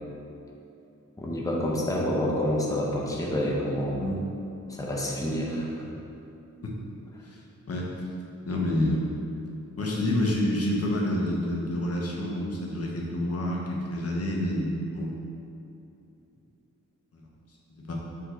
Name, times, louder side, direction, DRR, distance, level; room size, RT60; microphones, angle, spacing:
voice 1, 1.2-4.0 4.7-5.8, equal, 10° left, -3 dB, 0.8 m, -28 dB
voice 2, 8.4-9.1 9.8-15.2 17.1-17.2 17.8-17.9, left 1 dB, 50° left, -2 dB, 1.1 m, -28 dB
6.1 x 5.6 x 3.9 m, 2.7 s
wide cardioid pair, 180°, 31 cm